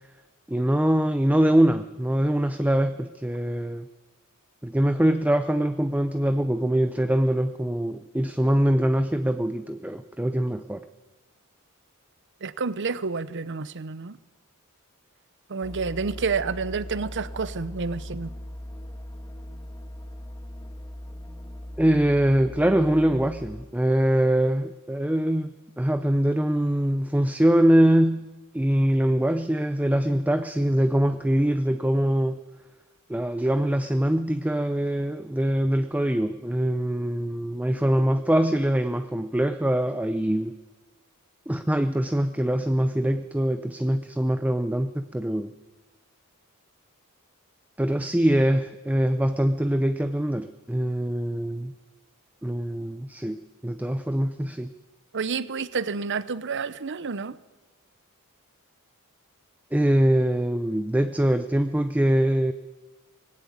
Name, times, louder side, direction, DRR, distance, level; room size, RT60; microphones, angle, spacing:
voice 1, 0.5-3.9 4.6-10.9 21.8-32.4 33.1-40.6 41.5-45.5 47.8-51.7 52.4-54.7 59.7-62.5, right 1 dB, 5° right, 0.6 m, -23 dB
voice 2, 12.4-14.2 15.5-18.3 55.1-57.4, right 5 dB, 55° right, 0.8 m, -29 dB
sound 1, 15.6-23.6, left 1 dB, 15° left, 1.8 m, -39 dB
20.0 x 16.0 x 9.4 m
head